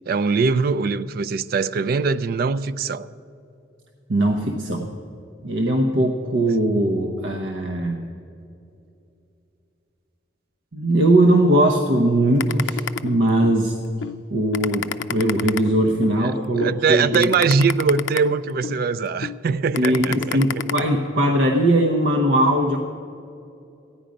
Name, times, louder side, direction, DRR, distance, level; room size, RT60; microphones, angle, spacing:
voice 1, 0.1-3.1 16.2-20.4, right 4 dB, 55° right, 0.3 m, -22 dB
voice 2, 4.1-4.9 5.4-8.1 10.7-13.8 14.3-17.3 19.8-22.8, right 1 dB, 75° right, 0.8 m, -20 dB
sound 1, 12.4-13.6 14.0-14.2 14.5-16.2 16.6-16.8 17.1-18.8 19.2-19.4 19.7-20.8, left 7 dB, 80° left, 0.4 m, -28 dB
14.0 x 10.0 x 5.1 m
head